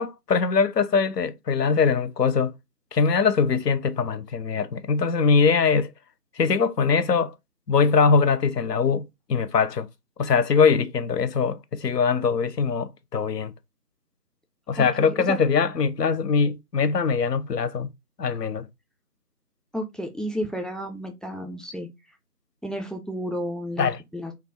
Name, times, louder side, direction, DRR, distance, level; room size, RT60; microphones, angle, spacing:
voice 1, 0.0-2.5 2.9-5.9 6.4-7.3 7.7-9.9 10.2-13.5 14.7-17.9 18.2-18.7 23.8-24.0, left 5 dB, 85° left, 0.6 m, -22 dB
voice 2, 14.8-15.1 19.7-21.9 22.6-24.3, equal, ahead, 0.4 m, -32 dB
2.3 x 2.3 x 3.3 m
figure-of-eight pair, 175°, 48 cm